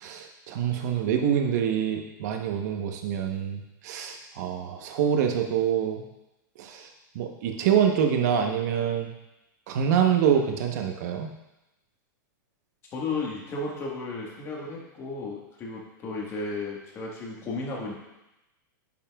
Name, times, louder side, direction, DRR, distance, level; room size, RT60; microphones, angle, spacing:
voice 1, 0.0-6.0 6.6-6.8 7.1-9.1 9.7-11.3, right 8 dB, 55° right, 4 dB, 0.9 m, -26 dB
voice 2, 12.9-17.9, left 3 dB, 25° left, -2 dB, 1.4 m, -34 dB
8.7 x 5.6 x 2.3 m, 0.95 s
supercardioid pair, 155°, 11 cm